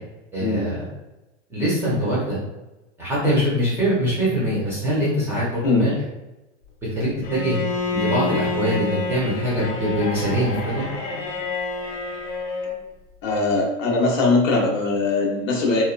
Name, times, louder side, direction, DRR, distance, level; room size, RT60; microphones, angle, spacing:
voice 1, 0.3-0.9 1.5-2.4 3.0-5.9 7.0-7.6 7.9-10.8, equal, 5° right, -8 dB, 0.4 m, -23 dB
Bowed string instrument, 7.2-12.8, left 3 dB, 45° left, 0.7 m, -28 dB
voice 2, 13.2-15.8, left 3 dB, 80° left, -1 dB, 0.9 m, -21 dB
2.9 x 2.2 x 2.3 m, 1.0 s
supercardioid pair, 145°, 38 cm